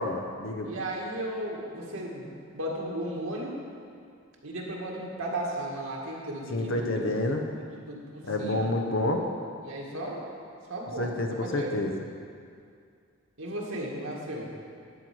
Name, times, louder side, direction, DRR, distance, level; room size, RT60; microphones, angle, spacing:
voice 1, 0.0-0.7 6.5-7.5 8.2-9.2 11.0-11.9, left 1 dB, 65° left, 3 dB, 0.9 m, -28 dB
voice 2, 0.6-3.6 4.4-7.2 7.9-8.7 9.6-10.3 10.7-11.7 13.4-14.5, right 1 dB, 80° right, -3 dB, 2.0 m, -35 dB
12.0 x 4.5 x 7.8 m, 2.3 s
head